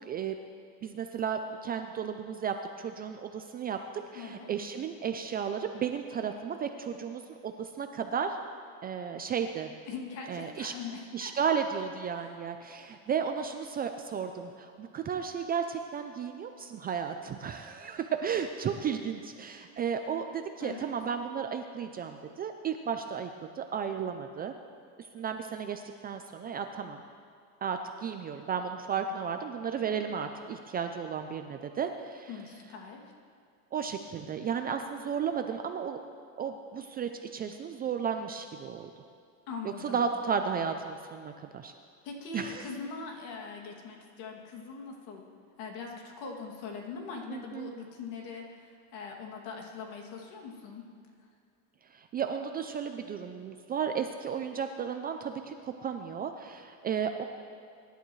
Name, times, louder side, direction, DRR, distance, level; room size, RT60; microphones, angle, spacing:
voice 1, 0.1-0.4 0.8-3.8 4.1-8.4 8.8-9.7 10.3-10.7 11.1-23.3 23.6-24.5 25.0-27.0 27.6-32.3 33.7-36.0 36.4-38.9 39.6-41.7 42.3-42.6 47.3-47.7 51.9-57.2, right 7 dB, 25° right, 6 dB, 0.3 m, -34 dB
voice 2, 4.1-4.5 9.9-11.3 12.1-12.4 20.6-20.9 32.3-33.0 39.5-40.0 42.0-45.3 45.6-50.9 51.2-51.3, left 5 dB, 70° left, 0 dB, 2.5 m, -42 dB
23.5 x 11.5 x 3.2 m, 2.3 s
cardioid pair, 150°, 41 cm